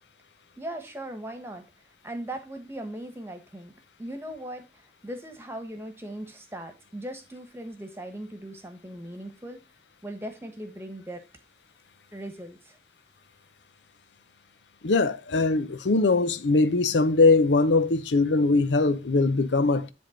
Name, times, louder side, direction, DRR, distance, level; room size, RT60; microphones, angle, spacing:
voice 1, 0.6-1.6 2.0-3.7 4.0-4.6 5.0-9.6 10.0-11.2 12.1-12.8, right 1 dB, 15° right, 1.3 m, -38 dB
voice 2, 14.8-19.9, left 3 dB, 85° left, 0.7 m, -21 dB
10.5 x 3.6 x 5.1 m
head